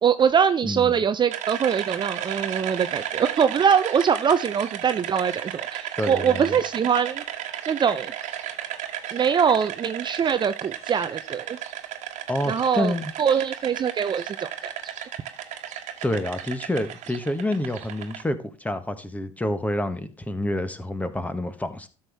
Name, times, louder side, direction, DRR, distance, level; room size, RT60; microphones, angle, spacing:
voice 1, 0.0-7.2 7.7-8.1 9.1-11.6 12.5-12.9 13.2-14.7, right 7 dB, 30° right, 0.6 m, -23 dB
voice 2, 0.6-1.0 6.0-6.6 12.3-13.1 16.0-21.9, left 1 dB, 10° left, 1.4 m, -28 dB
sound 1, 1.3-18.2, right 11 dB, 50° right, 1.5 m, -34 dB
13.0 x 6.3 x 3.5 m
hypercardioid pair, 70°, 15 cm